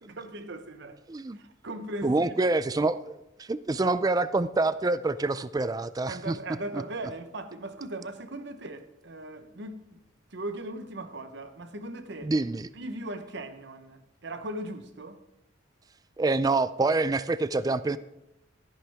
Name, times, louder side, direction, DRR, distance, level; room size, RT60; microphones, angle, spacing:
voice 1, 0.0-1.0 1.3-2.4 6.1-10.0 10.3-12.3 12.7-15.2, right 1 dB, 60° right, 1.0 m, -38 dB
voice 2, 2.0-6.4 6.7-6.8 12.2-12.7 16.2-18.0, right 3 dB, 20° right, 0.3 m, -26 dB
13.0 x 11.0 x 3.5 m
head